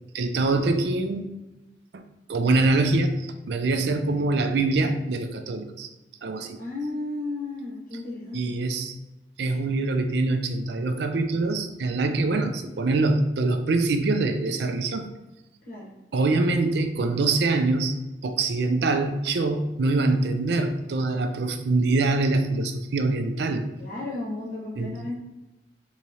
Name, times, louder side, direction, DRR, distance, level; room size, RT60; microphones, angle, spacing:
voice 1, 0.1-1.3 2.3-5.9 6.2-6.6 8.3-8.9 9.4-15.1 16.1-18.0 18.2-23.7 24.8-24.9, right 3 dB, 65° right, 7 dB, 0.4 m, -24 dB
voice 2, 6.6-8.5 15.6-15.9 23.8-25.2, left 2 dB, 55° left, -6 dB, 0.8 m, -33 dB
3.5 x 3.0 x 2.8 m, 1.0 s
head